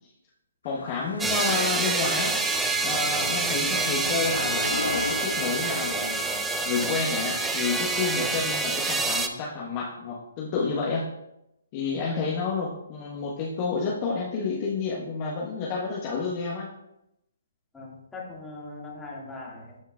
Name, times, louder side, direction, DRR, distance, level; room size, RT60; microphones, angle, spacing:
sound 1, 0.6-6.5, left 4 dB, 80° left, 0.3 m, -37 dB
voice 1, 0.6-2.3 2.8-6.2 6.6-11.0 11.7-16.7, left 4 dB, 35° left, -4 dB, 1.2 m, -30 dB
sound 2, 1.2-9.3, right 3 dB, 10° right, 0.5 m, -27 dB
sound 3, 2.7-5.9, right 4 dB, 65° right, 0.5 m, -41 dB
voice 2, 17.7-19.8, left 2 dB, 10° left, -5 dB, 2.0 m, -40 dB
12.5 x 4.5 x 2.4 m, 0.84 s
figure-of-eight pair, 135°, 0 cm